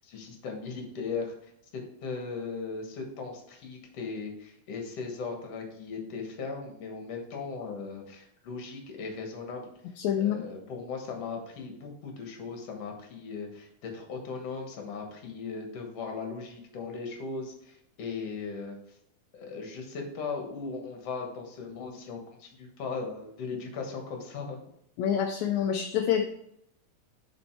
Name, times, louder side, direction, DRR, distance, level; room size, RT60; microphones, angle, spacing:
voice 1, 0.0-9.6 10.2-18.8 19.3-24.6, left 4 dB, 60° left, 2 dB, 2.4 m, -38 dB
voice 2, 10.0-10.4 25.0-26.2, left 9 dB, 75° left, 4 dB, 1.8 m, -26 dB
7.2 x 5.3 x 4.5 m, 0.75 s
omnidirectional pair, 3.5 m